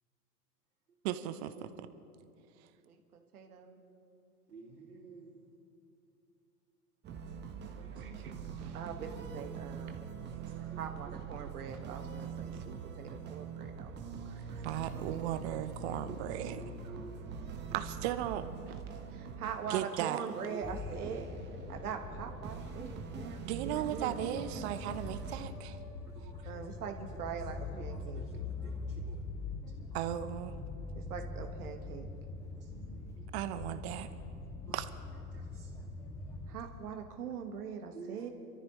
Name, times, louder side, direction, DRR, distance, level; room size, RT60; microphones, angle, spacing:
voice 1, 1.0-1.9 14.6-16.6 17.7-18.5 19.7-20.2 23.4-25.8 29.9-30.5 33.3-34.1 34.7-34.8, right 12 dB, 45° right, 11 dB, 0.9 m, -36 dB
voice 2, 2.8-3.8 7.9-10.0 10.8-13.9 14.2-15.6 18.7-18.8 19.1-21.3 21.7-24.4 26.5-28.2 31.0-32.1 36.5-38.3, right 7 dB, 70° right, 4 dB, 1.7 m, -43 dB
voice 3, 4.5-5.4 7.7-8.2 10.4-11.5 14.5-14.6 16.1-17.3 20.2-20.8 22.2-22.6 26.1-26.7 27.1-27.4 27.7-29.3 30.0-30.1 32.5-33.4 34.7-34.9 35.3-35.7 37.9-38.3, right 5 dB, 85° right, -5 dB, 2.8 m, -53 dB
sound 1, 7.0-25.4, right 5 dB, 20° right, 1.2 m, -44 dB
sound 2, 20.6-36.6, left 3 dB, 5° left, 0.4 m, -43 dB
sound 3, 22.6-22.9 23.1-23.5 23.8-27.8, left 4 dB, 55° left, 1.5 m, -56 dB
29.0 x 13.5 x 3.2 m, 2.6 s
hypercardioid pair, 115°, 46 cm